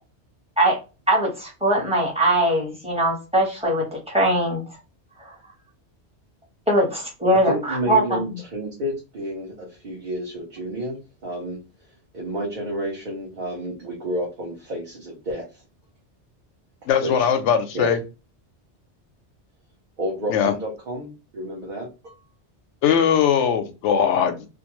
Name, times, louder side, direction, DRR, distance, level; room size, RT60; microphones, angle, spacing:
voice 1, 1.1-4.6 5.2-5.3 6.7-8.4, right 1 dB, 5° right, -4 dB, 1.1 m, -21 dB
voice 2, 7.3-11.6 12.1-15.6 17.0-17.3 17.7-17.9 20.0-22.2, equal, 50° right, -3 dB, 0.8 m, -30 dB
voice 3, 16.9-18.0 20.3-20.5 22.8-24.5, left 8 dB, 90° left, 8 dB, 0.9 m, -20 dB
2.6 x 2.2 x 2.9 m, 0.29 s
omnidirectional pair, 1.2 m